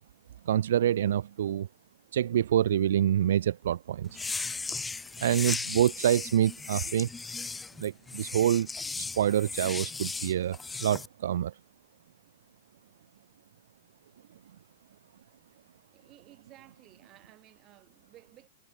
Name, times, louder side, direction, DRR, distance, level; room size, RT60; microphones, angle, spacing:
voice 1, 0.5-1.7 2.1-4.2 5.2-7.1 7.8-8.7 9.2-11.5, right 11 dB, 70° right, 0.6 m, -26 dB
sound 1, 4.1-11.1, left 4 dB, 5° left, 0.4 m, -36 dB
voice 2, 15.9-18.5, right 15 dB, 20° right, 5.7 m, -56 dB
supercardioid pair, 170°, 0 cm